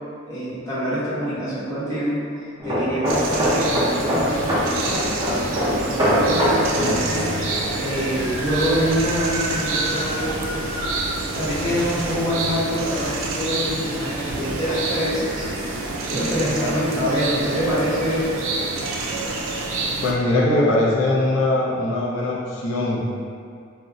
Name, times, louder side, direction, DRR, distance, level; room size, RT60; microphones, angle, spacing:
voice 1, 0.3-2.2 2.6-4.7 5.7-7.3 7.8-10.6 11.3-15.5 16.1-18.4, equal, 15° left, -12 dB, 0.9 m, -25 dB
sound 1, 1.5-2.4 2.9-3.6 4.6-4.7 4.9-5.0 5.3-11.1, right 1 dB, 50° right, 0.8 m, -34 dB
sound 2, 2.6-10.1 10.4-10.7, equal, 20° right, 0.6 m, -24 dB
sound 3, 3.1-20.1, right 2 dB, 70° right, 0.4 m, -28 dB
voice 2, 20.0-23.1, left 1 dB, 75° left, -5 dB, 0.4 m, -21 dB
2.5 x 2.0 x 3.7 m, 2.2 s
head